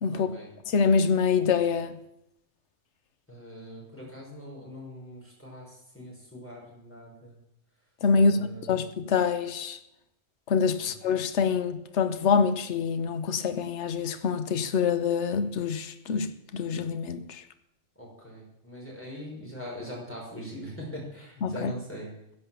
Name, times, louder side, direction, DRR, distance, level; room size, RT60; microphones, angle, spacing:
voice 1, 0.1-0.5 3.3-7.4 8.1-8.8 10.8-10.9 18.0-22.1, equal, 10° left, 5.5 m, -42 dB
voice 2, 0.7-2.0 8.0-9.8 10.5-17.4 21.4-21.7, left 5 dB, 70° left, 1.2 m, -25 dB
15.0 x 11.0 x 7.2 m
omnidirectional pair, 1.3 m